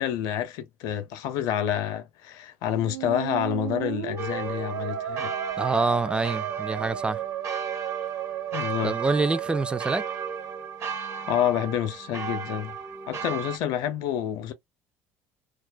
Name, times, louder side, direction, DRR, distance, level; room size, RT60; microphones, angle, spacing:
voice 1, 0.0-5.3 8.5-9.0 11.3-12.8 13.1-14.5, left 10 dB, 65° left, 0.6 m, -28 dB
Musical instrument, 2.7-10.7, right 11 dB, 85° right, 0.4 m, -34 dB
sound 1, 4.2-13.6, right 6 dB, 40° right, 0.7 m, -35 dB
voice 2, 5.6-7.2 8.8-10.1, right 3 dB, 15° right, 0.3 m, -26 dB
2.3 x 2.1 x 2.5 m
hypercardioid pair, 65°, 7 cm